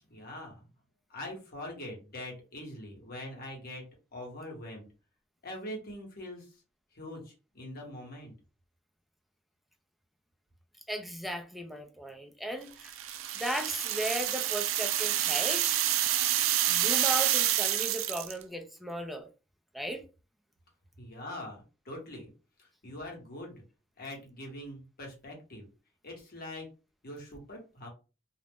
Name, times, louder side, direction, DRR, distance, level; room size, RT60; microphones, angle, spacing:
voice 1, 0.1-0.7 1.1-3.8 4.1-4.9 5.4-6.5 6.9-8.3 21.0-22.3 22.6-23.6 24.0-25.7 26.0-26.7 27.0-27.9, left 1 dB, 50° left, 1.1 m, -43 dB
voice 2, 10.9-13.0 13.4-15.8 16.7-19.3 19.7-20.1, right 1 dB, ahead, 0.3 m, -36 dB
sound 1, 12.8-18.4, right 12 dB, 85° right, 0.3 m, -28 dB
2.4 x 2.1 x 3.4 m
head